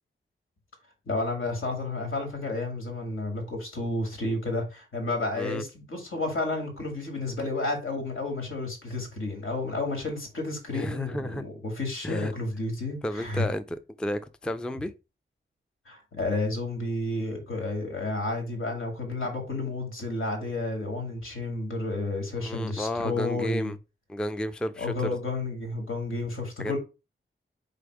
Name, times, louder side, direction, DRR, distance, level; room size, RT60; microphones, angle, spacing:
voice 1, 1.1-13.4 15.9-23.7 24.8-26.8, left 2 dB, 80° left, 2.4 m, -31 dB
voice 2, 10.7-11.4 12.0-12.3 13.0-14.9 22.4-23.8 24.1-25.2 26.6-26.8, left 1 dB, 5° left, 0.3 m, -32 dB
5.2 x 4.2 x 4.8 m
wide cardioid pair, 170°, 21 cm